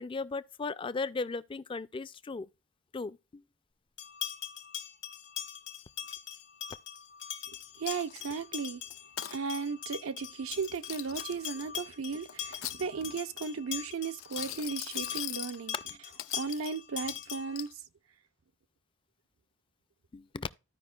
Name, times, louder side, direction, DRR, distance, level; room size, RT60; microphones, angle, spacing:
voice 1, 0.0-2.5 2.9-3.4 20.1-20.5, left 4 dB, 25° left, 0.3 m, -36 dB
sound 1, 4.0-17.6, left 9 dB, 60° left, 1.0 m, -41 dB
voice 2, 7.8-8.8 9.3-15.8 16.3-17.7, right 5 dB, 85° right, 0.6 m, -35 dB
Coin (dropping), 7.9-8.4 8.9-9.4 10.5-11.6 12.3-13.2 14.2-15.6 16.2-16.7 17.1-17.7, left 13 dB, 85° left, 0.5 m, -41 dB
14.5 x 5.0 x 2.3 m
head